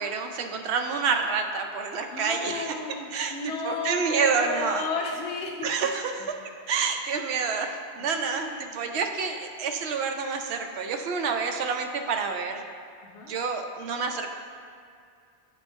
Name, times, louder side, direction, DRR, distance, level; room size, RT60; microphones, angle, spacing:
voice 1, 0.0-2.7 3.1-3.3 3.6-4.8 5.6-6.3 6.7-12.6 13.3-14.3, right 5 dB, 75° right, 4 dB, 0.9 m, -28 dB
voice 2, 2.1-5.7 8.0-8.8 13.0-13.3, left 4 dB, 85° left, 1 dB, 0.9 m, -34 dB
8.8 x 3.2 x 4.4 m, 2.3 s
omnidirectional pair, 1.1 m